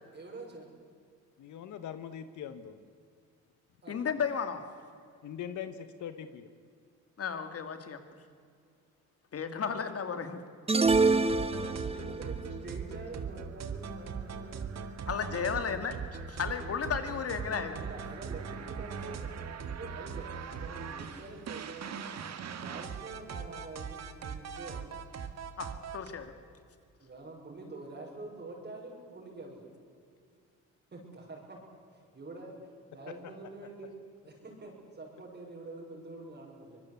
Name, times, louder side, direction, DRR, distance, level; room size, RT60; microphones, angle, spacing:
voice 1, 0.1-0.7 3.8-4.1 11.5-14.6 17.7-22.1 22.6-25.0 27.0-29.8 30.9-31.6 31.9-33.9 34.3-36.8, right 2 dB, 35° right, -2 dB, 6.1 m, -46 dB
voice 2, 1.4-2.8 5.2-6.5, left 8 dB, 75° left, 10 dB, 1.3 m, -41 dB
voice 3, 3.9-4.6 7.2-8.0 9.3-10.4 15.1-16.0 16.3-17.8 25.6-26.3, left 6 dB, 50° left, 8 dB, 2.7 m, -34 dB
sound 1, 10.7-12.2, right 3 dB, 20° right, 1.2 m, -25 dB
sound 2, 10.8-26.1, right 6 dB, 60° right, 2.0 m, -40 dB
24.5 x 20.5 x 8.3 m, 2.2 s
cardioid pair, 90°, 30 cm